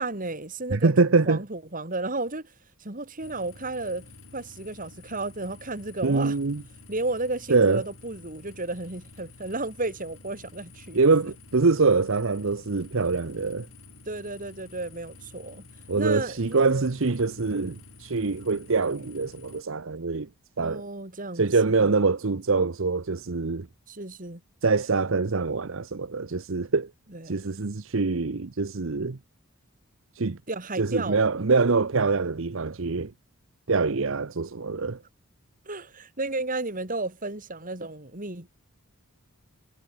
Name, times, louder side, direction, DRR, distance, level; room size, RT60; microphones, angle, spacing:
voice 1, 0.0-2.5 2.8-6.4 6.9-11.0 14.1-15.7 15.9-16.6 20.6-21.4 21.8-21.9 23.9-24.4 27.1-27.4 30.5-31.3 35.7-38.5, right 2 dB, 40° right, 3.0 m, -33 dB
voice 2, 0.7-1.4 6.0-6.6 7.5-7.8 10.9-13.7 15.9-20.3 20.6-20.8 21.3-23.7 24.6-26.9 27.2-29.2 30.2-30.4 30.8-33.1 33.7-35.0, right 4 dB, 60° right, 0.8 m, -24 dB
sound 1, 3.2-19.6, left 3 dB, 60° left, 5.8 m, -50 dB
head